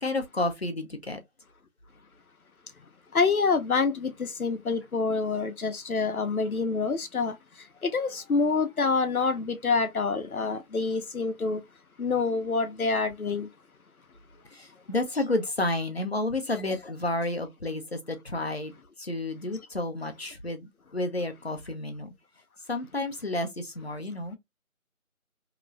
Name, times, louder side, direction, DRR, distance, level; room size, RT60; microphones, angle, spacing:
voice 1, 0.0-1.2 14.5-18.7 19.0-22.1 22.7-24.4, left 2 dB, 50° left, 0.6 m, -31 dB
voice 2, 3.1-7.3 7.8-11.6 12.0-13.5, left 4 dB, 90° left, 0.9 m, -27 dB
2.9 x 2.5 x 3.1 m
figure-of-eight pair, 175°, 42 cm